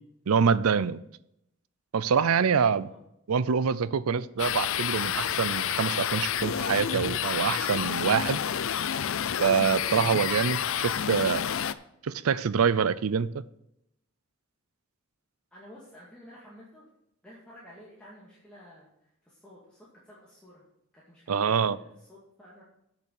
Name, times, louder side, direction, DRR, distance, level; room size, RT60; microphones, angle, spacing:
voice 1, 0.3-1.0 1.9-2.9 3.3-8.4 9.4-11.4 12.0-13.3 21.3-21.8, right 6 dB, 90° right, 0.5 m, -25 dB
voice 2, 2.7-3.0 15.5-16.8 17.2-20.6 20.9-22.6, equal, 5° left, 2.2 m, -52 dB
sound 1, 4.4-11.7, left 9 dB, 70° left, 0.5 m, -29 dB
8.1 x 6.8 x 6.5 m
head